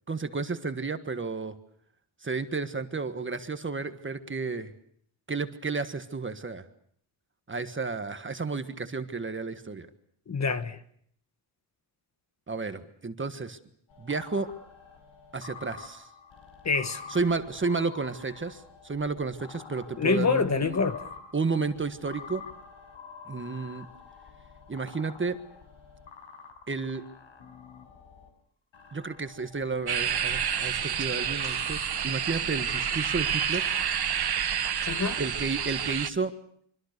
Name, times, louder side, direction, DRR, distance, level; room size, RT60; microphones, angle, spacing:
voice 1, 0.1-1.5 2.2-4.7 5.3-6.6 7.5-9.9 12.5-13.6 14.0-14.5 15.3-16.1 17.1-20.8 21.3-22.4 23.3-23.8 24.7-25.4 26.7-27.0 28.9-33.6 35.2-36.3, right 4 dB, 25° right, 1.5 m, -32 dB
voice 2, 10.3-10.8 16.6-17.0 20.0-21.0 34.9-35.2, left 5 dB, 35° left, 1.5 m, -26 dB
sound 1, 13.9-28.3 28.7-33.9, left 5 dB, 75° left, 5.8 m, -47 dB
sound 2, 29.9-36.1, right 8 dB, 50° right, 1.5 m, -29 dB
26.0 x 24.5 x 6.7 m
wide cardioid pair, 145°, 48 cm